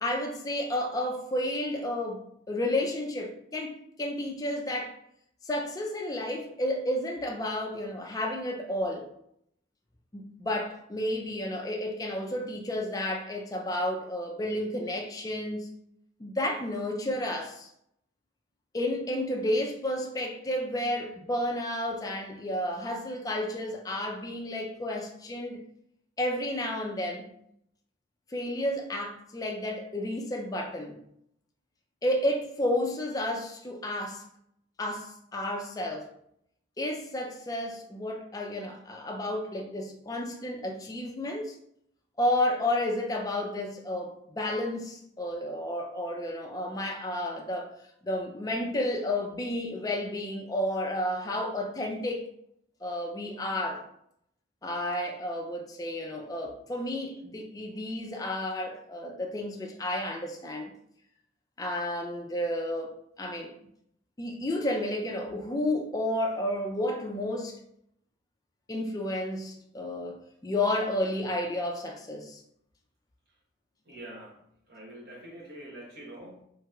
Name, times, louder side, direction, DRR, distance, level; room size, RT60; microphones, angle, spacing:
voice 1, 0.0-5.0 5.4-9.1 10.1-15.7 16.2-17.7 18.7-25.6 26.2-27.3 28.3-31.0 32.0-34.2 34.8-36.1 36.8-41.6 42.2-47.7 48.0-52.3 52.8-53.9 54.6-60.7 61.6-63.5 64.2-67.6 68.7-72.4, left 1 dB, 20° left, 0.3 m, -31 dB
voice 2, 73.8-76.5, right 1 dB, 55° right, 0.9 m, -45 dB
3.2 x 2.9 x 2.3 m
head